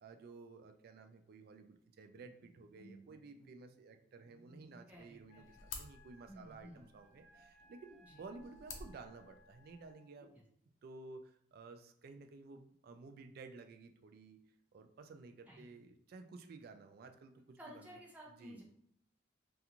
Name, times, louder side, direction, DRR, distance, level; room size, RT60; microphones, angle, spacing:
voice 1, 0.0-10.4 10.8-14.4 14.7-18.0 18.4-18.6, right 3 dB, 50° right, 6 dB, 0.3 m, -54 dB
Bowed string instrument, 2.2-5.2 5.5-5.7 6.2-6.3 6.5-8.4 8.7-9.5 10.2-10.8, right 1 dB, 60° left, 1.0 m, -64 dB
sound 1, 4.9-9.9, left 4 dB, 80° left, 0.5 m, -54 dB
voice 2, 4.9-5.6 6.3-6.9 8.0-8.2 10.3-10.4 15.5-15.7 17.6-18.6, equal, 10° right, -3 dB, 0.6 m, -54 dB
Wind instrument woodwind instrument, 5.3-10.1, left 1 dB, 40° left, 1.2 m, -66 dB
2.4 x 2.3 x 2.9 m, 0.66 s
head